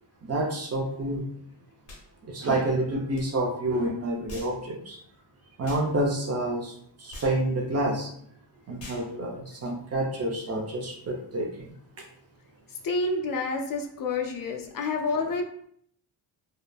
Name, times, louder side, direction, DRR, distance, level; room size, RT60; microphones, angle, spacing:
voice 1, 0.2-1.2 2.3-5.0 5.6-8.1 8.7-11.7, right 1 dB, 35° right, 1 dB, 0.5 m, -28 dB
sound 1, 1.9-2.1 3.1-3.3 4.3-4.6 5.6-5.9 7.1-7.4 8.8-9.1, left 1 dB, 80° left, 1.0 m, -43 dB
voice 2, 12.8-15.4, left 3 dB, 50° left, 3 dB, 0.5 m, -28 dB
2.8 x 2.1 x 2.2 m, 0.65 s
cardioid pair, 90°, 43 cm